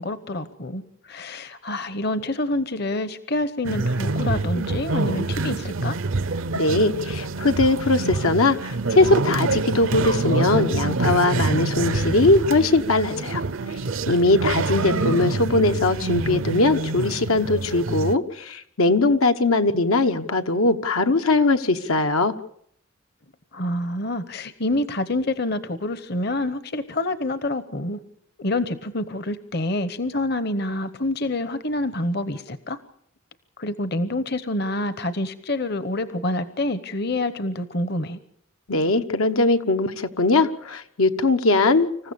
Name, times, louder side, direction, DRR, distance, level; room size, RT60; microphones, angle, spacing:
voice 1, 0.0-6.0 14.7-15.0 15.4-15.6 23.5-28.0 28.4-32.8 33.6-38.2, left 1 dB, 50° left, 13 dB, 1.0 m, -27 dB
sound 1, 3.6-18.1, right 3 dB, 70° right, 0.7 m, -26 dB
voice 2, 6.5-13.4 14.1-22.3 38.7-41.9, left 2 dB, 80° left, 7 dB, 1.1 m, -20 dB
26.5 x 15.0 x 7.0 m, 0.70 s
head